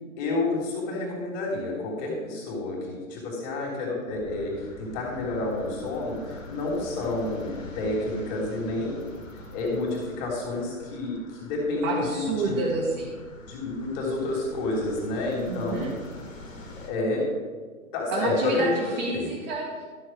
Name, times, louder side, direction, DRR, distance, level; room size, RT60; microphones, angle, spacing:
voice 1, 0.2-9.0 9.3-12.6 13.5-15.9 16.8-17.3 17.9-18.8 19.1-19.3, left 2 dB, 30° left, -3 dB, 3.3 m, -29 dB
sound 1, 4.1-16.9, left 1 dB, 65° left, 2.5 m, -44 dB
voice 2, 11.8-13.2 15.4-15.9 18.1-19.8, right 3 dB, 30° right, -5 dB, 2.0 m, -29 dB
12.5 x 6.7 x 4.6 m, 1.5 s
figure-of-eight pair, 125°, 42 cm